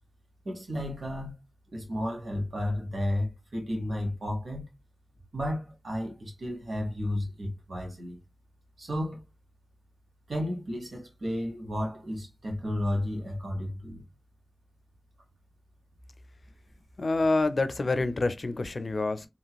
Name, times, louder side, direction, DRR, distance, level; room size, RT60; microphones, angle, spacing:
voice 1, 0.4-1.4 1.7-4.7 5.3-8.2 8.8-9.2 10.3-14.0, left 1 dB, 80° right, 1.3 m, -32 dB
voice 2, 17.0-19.2, left 3 dB, 70° left, 0.4 m, -27 dB
2.9 x 2.9 x 2.3 m
wide cardioid pair, 50°, 0 cm